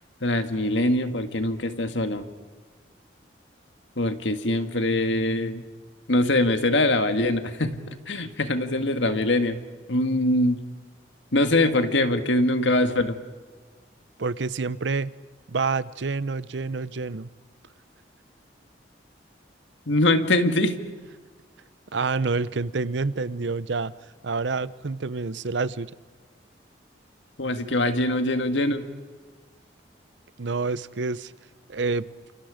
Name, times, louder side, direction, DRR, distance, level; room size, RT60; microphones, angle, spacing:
voice 1, 0.2-2.2 4.0-5.6 6.1-9.6 9.9-10.6 11.3-13.2 19.9-20.8 27.4-28.9, left 1 dB, 80° left, 8 dB, 1.9 m, -23 dB
voice 2, 14.2-15.1 15.5-17.3 21.9-23.9 24.2-25.9 30.4-31.3 31.7-32.1, right 4 dB, 75° right, 17 dB, 0.7 m, -27 dB
29.5 x 27.5 x 5.1 m, 1.4 s
head